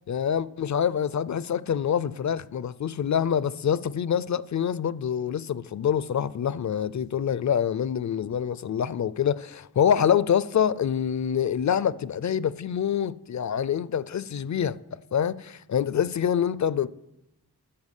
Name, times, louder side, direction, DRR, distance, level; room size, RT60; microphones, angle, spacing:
voice 1, 0.1-14.8 15.1-16.9, left 8 dB, 50° left, 0.5 m, -26 dB
11.5 x 8.6 x 8.2 m
wide cardioid pair, 130°, 37 cm